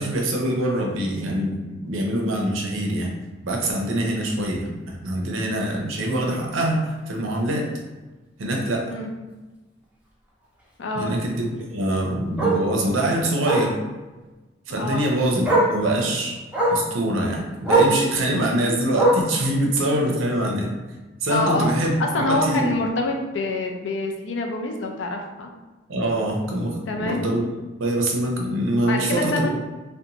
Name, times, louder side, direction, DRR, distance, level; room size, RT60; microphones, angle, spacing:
voice 1, 0.0-3.1 3.4-7.7 8.4-8.9 10.9-13.8 14.7-16.4 16.7-20.7 21.2-22.7 25.9-27.5 27.8-29.5, right 1 dB, 85° right, 0 dB, 0.5 m, -24 dB
Bark, 5.9-6.1 6.5-6.6 7.0-7.1 7.4-7.5 8.9-9.0 11.5-11.6 12.4-12.6 13.4-13.7 14.9-15.0 15.4-15.8 16.5-16.9 17.6-18.0 18.9-19.4 20.3-20.4, right 2 dB, 5° right, 0.4 m, -20 dB
voice 2, 10.8-11.1 14.8-15.0 21.3-21.7 22.0-25.5 26.9-27.3 28.9-29.5, left 2 dB, 70° left, 2 dB, 0.4 m, -26 dB
2.6 x 2.1 x 2.8 m, 1.2 s
head